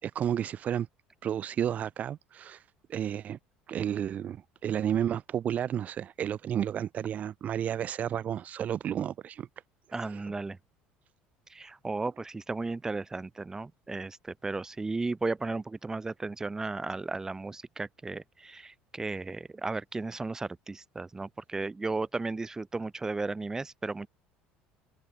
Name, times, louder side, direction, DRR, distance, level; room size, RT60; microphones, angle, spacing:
voice 1, 0.0-0.9 1.2-2.6 2.9-3.4 3.7-9.5 10.0-10.3, right 9 dB, 45° right, 5.3 m, -32 dB
voice 2, 9.9-10.6 11.5-24.1, right 3 dB, 15° right, 6.7 m, -35 dB
open air
supercardioid pair, 110°, 4 cm